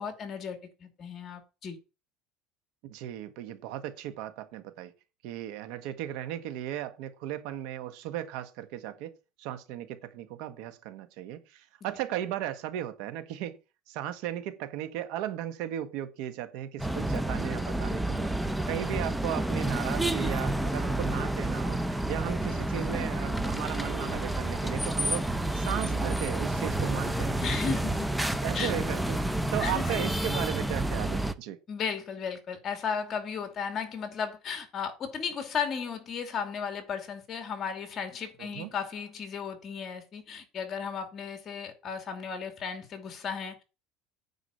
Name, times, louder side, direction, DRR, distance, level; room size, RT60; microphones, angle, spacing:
voice 1, 0.0-1.8 22.4-22.6 27.4-28.1 28.5-29.0 29.6-29.9 31.7-43.6, left 6 dB, 30° left, 2.6 m, -35 dB
voice 2, 2.8-4.9 5.2-9.1 9.4-13.6 13.9-18.3 18.7-21.8 22.1-25.3 25.5-27.4 28.4-29.2 29.5-31.6 38.4-38.7, right 12 dB, 65° right, 1.5 m, -36 dB
sound 1, 16.8-31.3, right 1 dB, 5° right, 0.7 m, -29 dB
9.6 x 4.9 x 7.9 m
cardioid pair, 150°, 0 cm